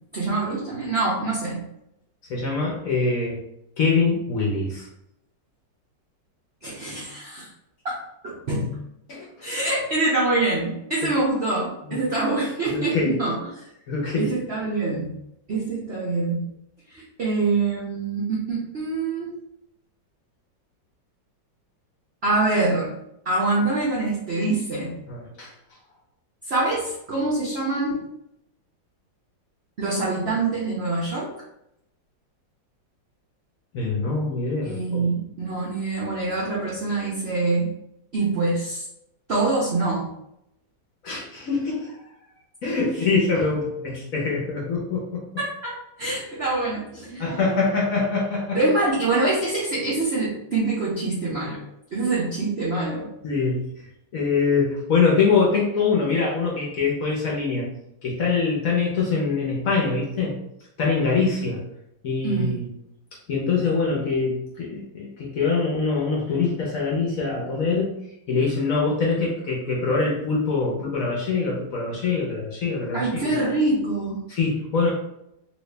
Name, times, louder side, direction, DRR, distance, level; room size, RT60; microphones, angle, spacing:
voice 1, 0.1-1.6 6.6-7.5 7.8-8.8 9.4-13.6 14.2-15.1 15.5-16.5 16.9-19.3 22.2-22.9 23.2-24.9 26.5-28.0 29.8-31.3 34.6-37.7 38.1-38.8 39.3-40.1 45.4-47.4 48.5-51.6 51.9-53.1 62.2-62.5 72.9-74.2, right 2 dB, 65° right, -6 dB, 0.6 m, -25 dB
voice 2, 2.3-3.4 3.8-4.9 9.1-9.5 11.9-12.0 12.7-13.2 13.9-14.3 25.1-25.5 33.7-35.1 41.0-42.0 42.6-45.2 47.2-48.6 53.2-53.7 54.1-57.7 58.0-60.4 60.8-61.6 62.0-62.7 63.3-68.0 68.3-73.3 74.3-74.9, left 4 dB, 60° left, -3 dB, 0.9 m, -24 dB
3.1 x 2.7 x 3.2 m, 0.80 s
omnidirectional pair, 2.0 m